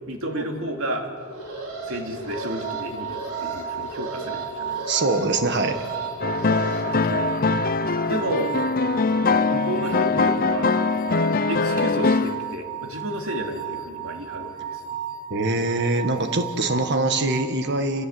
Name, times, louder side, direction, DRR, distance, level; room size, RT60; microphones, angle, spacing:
voice 1, 0.1-1.1 1.9-4.9 7.0-7.4 8.1-8.5 9.5-10.7 11.5-14.8, right 1 dB, 65° right, 3 dB, 2.7 m, -31 dB
Alarm, 1.2-6.8, right 2 dB, 80° right, 4.6 m, -35 dB
sound 1, 2.3-17.5, right 9 dB, 65° left, 1.5 m, -34 dB
voice 2, 4.9-5.8 15.3-18.1, right 2 dB, 50° right, 7 dB, 1.7 m, -23 dB
sound 2, 6.2-12.5, left 4 dB, 40° left, 0.6 m, -22 dB
29.5 x 17.0 x 8.0 m, 2.3 s
head